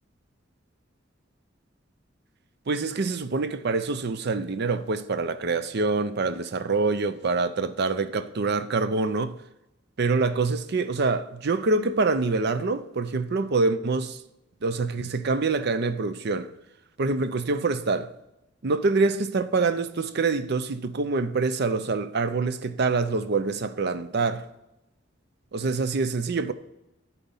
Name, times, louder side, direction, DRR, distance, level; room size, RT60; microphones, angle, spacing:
voice 1, 2.7-9.4 10.0-14.2 14.6-16.5 17.0-18.1 18.6-24.5 25.5-26.5, right 3 dB, 60° right, 0.6 m, -25 dB
11.0 x 4.2 x 5.5 m
head